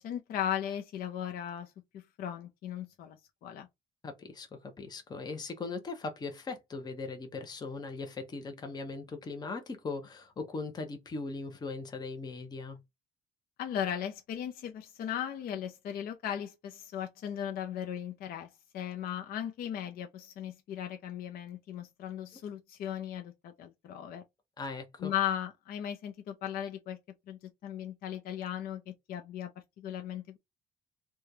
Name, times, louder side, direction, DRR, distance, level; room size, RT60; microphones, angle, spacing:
voice 1, 0.0-3.7 13.6-18.5 18.7-24.2 25.0-27.0 27.3-29.5 29.8-30.4, left 10 dB, 60° left, 0.6 m, -37 dB
voice 2, 4.0-12.8 24.6-25.1, left 3 dB, 25° left, 0.7 m, -39 dB
3.1 x 2.2 x 3.8 m
cardioid pair, 110°, 17 cm